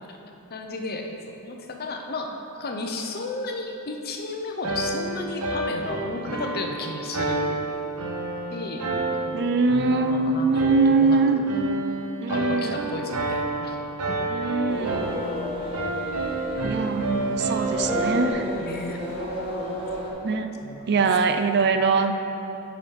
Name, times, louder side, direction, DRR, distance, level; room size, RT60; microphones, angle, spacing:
voice 1, 0.5-7.6 8.5-8.9 9.3-9.5 9.9-11.5 12.3-13.8 14.1-14.3 18.6-19.0 20.6-21.0, left 2 dB, 45° left, 3 dB, 0.7 m, -33 dB
sound 1, 4.6-18.3, right 2 dB, 85° right, 1.0 m, -30 dB
voice 2, 9.3-11.4 12.2-12.8 14.3-15.3 16.6-18.5 20.2-20.5 20.9-22.1, right 4 dB, 50° right, 7 dB, 0.5 m, -23 dB
sound 2, 14.7-20.1, left 1 dB, 25° right, 1.4 m, -32 dB
9.8 x 5.2 x 4.7 m, 2.8 s
head